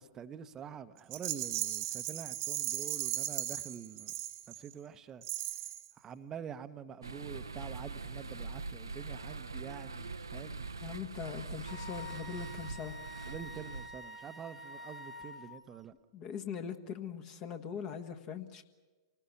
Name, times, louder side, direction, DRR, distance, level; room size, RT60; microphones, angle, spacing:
voice 1, 0.0-4.1 4.6-5.2 6.0-10.7 13.3-15.9, right 8 dB, 25° right, 0.9 m, -46 dB
Rattle, 1.1-4.7 5.2-5.9, right 14 dB, 45° right, 1.4 m, -37 dB
sound 1, 7.0-13.9, right 4 dB, 85° right, 0.9 m, -43 dB
voice 2, 10.8-13.0 16.1-18.6, left 8 dB, 35° left, 1.6 m, -41 dB
Wind instrument woodwind instrument, 11.7-15.5, left 2 dB, ahead, 1.2 m, -48 dB
26.5 x 19.0 x 7.1 m
figure-of-eight pair, 110°, 2 cm